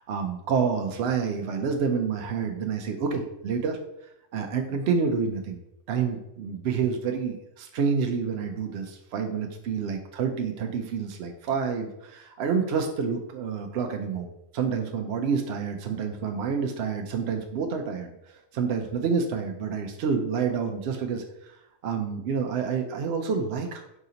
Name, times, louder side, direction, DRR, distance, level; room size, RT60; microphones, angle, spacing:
voice 1, 0.0-3.8 4.3-5.6 5.9-14.3 14.5-21.6 21.8-24.0, right 6 dB, 65° right, 3 dB, 0.7 m, -28 dB
4.9 x 3.8 x 2.8 m, 0.85 s
omnidirectional pair, 1.3 m